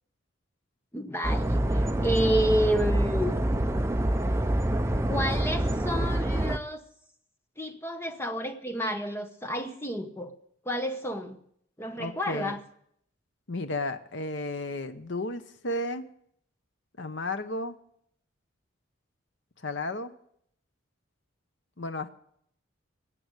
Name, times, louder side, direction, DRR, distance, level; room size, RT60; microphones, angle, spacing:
voice 1, 0.9-3.3 5.1-6.8 7.6-10.3 10.6-11.4 11.8-12.6, equal, 10° left, 7 dB, 1.0 m, -30 dB
sound 1, 1.2-6.6, right 1 dB, 15° right, 0.6 m, -26 dB
voice 2, 12.0-12.6 13.5-16.1 17.0-17.7 19.6-20.1 21.8-22.1, left 2 dB, 60° left, 10 dB, 0.8 m, -33 dB
19.0 x 7.8 x 8.2 m, 0.68 s
head